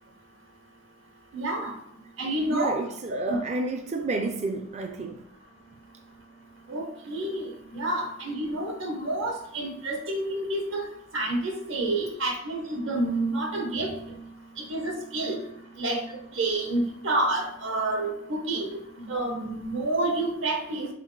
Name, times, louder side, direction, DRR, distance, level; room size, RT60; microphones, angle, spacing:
voice 1, 1.3-1.7 2.2-2.8 3.1-3.4 6.7-7.4 7.7-10.8 11.1-13.9 14.7-15.4 15.8-16.0 16.3-20.9, right 2 dB, 80° right, 3 dB, 1.2 m, -29 dB
voice 2, 2.5-5.3, right 3 dB, 35° right, 4 dB, 0.4 m, -30 dB
6.4 x 3.9 x 3.8 m, 0.75 s
head